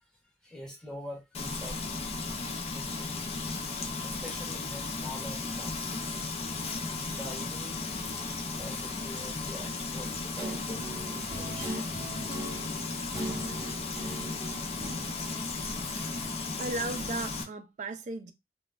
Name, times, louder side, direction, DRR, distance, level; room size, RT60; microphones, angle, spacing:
voice 1, 0.4-1.8 2.7-3.4 4.0-5.8 7.1-7.8 8.6-10.7 11.1-11.9 15.8-16.6, equal, 5° left, 0.8 m, -45 dB
Frying (food), 1.3-17.4, left 3 dB, 35° left, 0.4 m, -35 dB
Guitar, 10.4-16.2, right 1 dB, 20° right, 0.7 m, -41 dB
voice 2, 16.6-18.3, right 3 dB, 40° right, 0.3 m, -35 dB
3.1 x 2.2 x 2.3 m
head